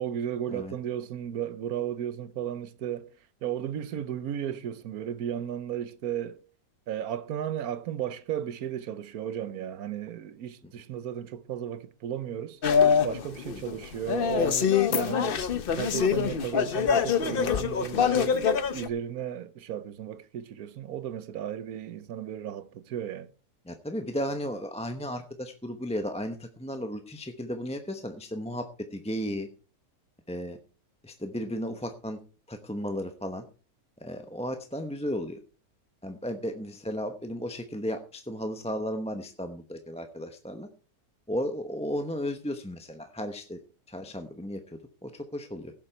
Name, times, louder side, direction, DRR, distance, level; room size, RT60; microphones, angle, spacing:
voice 1, 0.0-3.1 3.4-6.4 6.9-12.6 13.0-15.4 15.7-23.3, right 10 dB, 80° right, 1.3 m, -34 dB
sound 1, 12.6-18.9, left 7 dB, 50° left, 0.8 m, -25 dB
voice 2, 23.7-29.5 30.3-30.6 31.0-32.2 32.5-33.5 34.0-35.4 36.0-40.7 41.3-43.6 43.9-45.7, equal, 5° left, 0.7 m, -34 dB
16.5 x 7.4 x 4.4 m
omnidirectional pair, 1.5 m